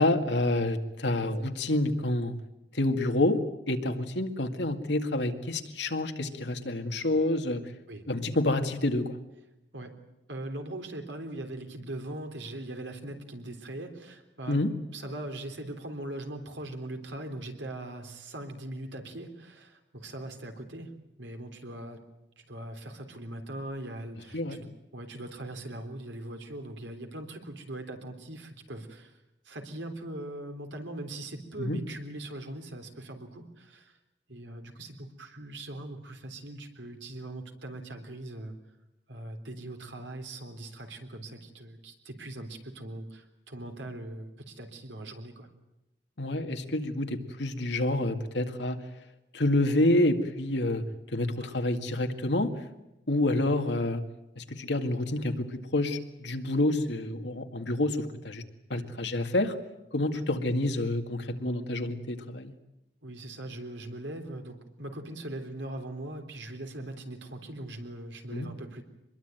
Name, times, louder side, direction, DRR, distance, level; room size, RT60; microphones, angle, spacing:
voice 1, 0.0-2.3 2.7-3.4 3.7-7.6 8.1-9.2 14.5-14.7 24.3-24.6 31.6-31.8 46.2-48.8 49.3-50.8 51.1-52.5 53.1-54.0 54.4-58.4 58.7-59.6 59.9-62.5 68.3-68.5, left 1 dB, 70° left, 6 dB, 2.1 m, -28 dB
voice 2, 10.3-14.6 14.9-22.0 22.4-34.0 34.3-38.5 39.1-45.5 51.4-51.6 58.7-58.8 60.1-60.2 63.0-68.8, right 1 dB, 80° right, 5 dB, 3.5 m, -41 dB
24.5 x 22.0 x 9.1 m, 0.94 s
head